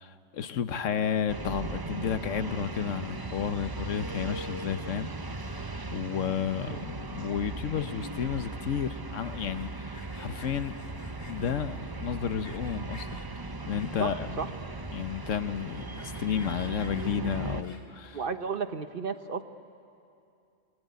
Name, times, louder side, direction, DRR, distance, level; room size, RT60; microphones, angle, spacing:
voice 1, 0.0-5.1 5.4-10.8 11.3-13.1 13.7-14.3 14.9-18.2, left 8 dB, 90° left, 11 dB, 1.3 m, -32 dB
sound 1, 1.3-17.6, right 2 dB, 20° right, 0.8 m, -38 dB
Sawing, 9.4-11.6 12.1-13.3 13.7-14.3 14.8-14.9 15.1-15.2 15.6-18.1, left 2 dB, 50° left, 2.6 m, -52 dB
voice 2, 14.0-14.5 18.1-19.4, right 5 dB, 50° right, 9 dB, 1.1 m, -33 dB
29.5 x 20.0 x 9.5 m, 2.6 s
omnidirectional pair, 1.3 m